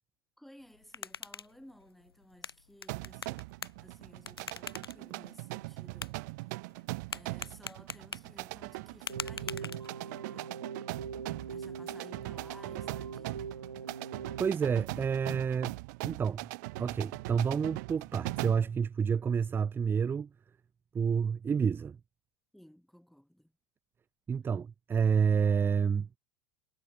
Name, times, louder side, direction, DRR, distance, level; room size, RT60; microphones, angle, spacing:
voice 1, 0.4-3.5 3.8-6.1 6.4-10.6 11.5-13.5 22.5-23.5, equal, ahead, 2.4 m, -56 dB
sound 1, 0.6-10.2, left 5 dB, 85° left, 0.4 m, -46 dB
sound 2, 2.9-18.7, right 25 dB, 50° right, 0.8 m, -41 dB
Keyboard (musical), 9.1-14.5, right 5 dB, 80° right, 1.1 m, -42 dB
voice 2, 14.4-15.8 16.0-16.5 16.8-20.3 20.9-22.0 24.3-26.1, right 6 dB, 15° right, 0.6 m, -29 dB
figure-of-eight pair, 85°, 12 cm